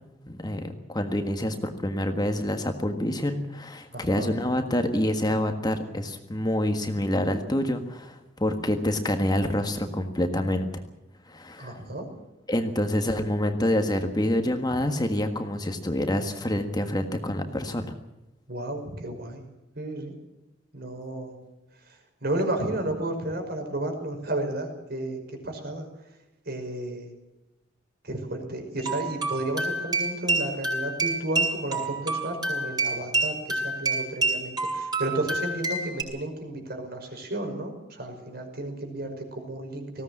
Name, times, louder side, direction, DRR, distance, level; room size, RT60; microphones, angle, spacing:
voice 1, 0.3-10.7 11.3-11.7 12.5-17.9, left 1 dB, 20° left, 6 dB, 1.6 m, -27 dB
voice 2, 3.9-4.3 11.6-12.1 12.8-13.1 18.5-19.4 19.8-20.1 20.7-21.4 21.8-25.9 26.5-27.1 28.0-40.0, right 1 dB, 55° right, 4 dB, 5.6 m, -32 dB
sound 1, 28.8-36.0, right 3 dB, 20° right, 6.3 m, -28 dB
19.5 x 16.5 x 8.6 m, 0.94 s
head